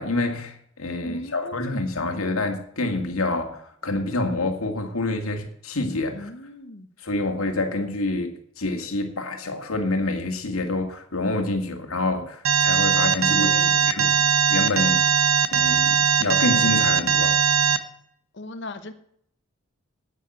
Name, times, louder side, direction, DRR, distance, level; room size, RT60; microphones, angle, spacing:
voice 1, 0.0-6.3 7.0-15.0 15.5-17.4, left 2 dB, 90° left, 4 dB, 2.2 m, -27 dB
voice 2, 1.0-1.8 6.1-6.9 13.3-13.9 18.3-18.9, left 2 dB, 55° left, 9 dB, 1.0 m, -38 dB
Alarm, 12.4-17.8, right 7 dB, 85° right, 1.0 m, -20 dB
9.4 x 9.0 x 7.9 m, 0.67 s
head